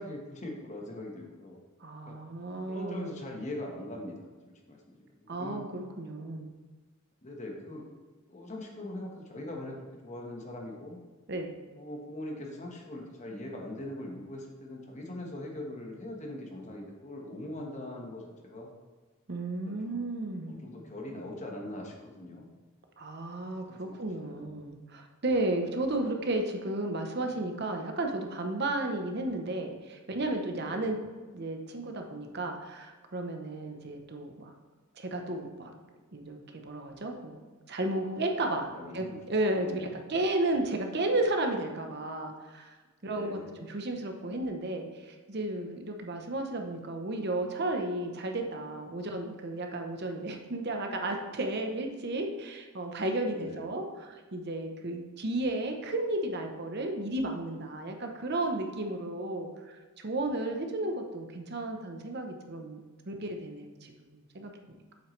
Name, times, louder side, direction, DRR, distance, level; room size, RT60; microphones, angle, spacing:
voice 1, 0.0-1.6 2.1-2.2 2.7-4.3 4.7-5.6 6.2-6.3 7.2-7.9 8.3-11.0 11.8-18.7 19.7-20.0 20.5-22.5 23.7-24.5 30.6-30.9 33.6-33.9 38.0-39.2 39.6-40.1 43.0-43.5 53.3-53.7, left 1 dB, 35° left, 0 dB, 1.3 m, -42 dB
voice 2, 1.8-3.1 5.3-6.5 11.3-11.5 19.3-20.6 23.0-31.0 31.3-34.5 35.0-35.7 36.1-37.4 37.7-42.7 43.0-62.8 63.1-64.8, right 2 dB, 50° right, 4 dB, 0.9 m, -33 dB
8.2 x 8.0 x 3.2 m, 1.3 s
head